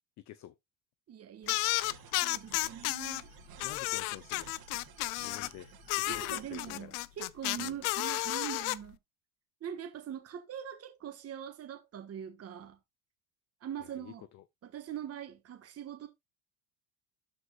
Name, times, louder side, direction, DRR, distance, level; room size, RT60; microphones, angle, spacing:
voice 1, 0.2-0.5 3.6-4.5 5.2-5.7 6.1-7.0 7.6-7.8 13.8-14.4, left 13 dB, 40° left, 0.6 m, -48 dB
voice 2, 1.1-1.6 2.2-3.3 6.1-9.0 9.6-12.8 13.6-14.2 14.6-16.1, right 9 dB, 30° right, 1.4 m, -42 dB
sound 1, 1.5-3.2 3.6-5.5 5.9-8.8, left 20 dB, 85° left, 0.6 m, -32 dB
sound 2, 1.8-6.8, right 7 dB, 50° right, 2.4 m, -54 dB
13.0 x 4.7 x 2.3 m
cardioid pair, 125°, 45 cm